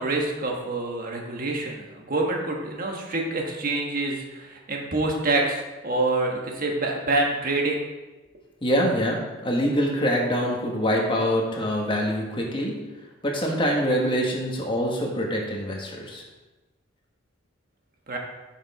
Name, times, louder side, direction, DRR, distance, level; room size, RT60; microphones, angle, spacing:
voice 1, 0.0-7.9 18.1-18.2, right 2 dB, 45° right, 0 dB, 1.3 m, -26 dB
voice 2, 8.6-12.7 13.2-16.2, equal, 25° left, 0 dB, 1.4 m, -25 dB
6.5 x 5.7 x 4.8 m, 1.1 s
head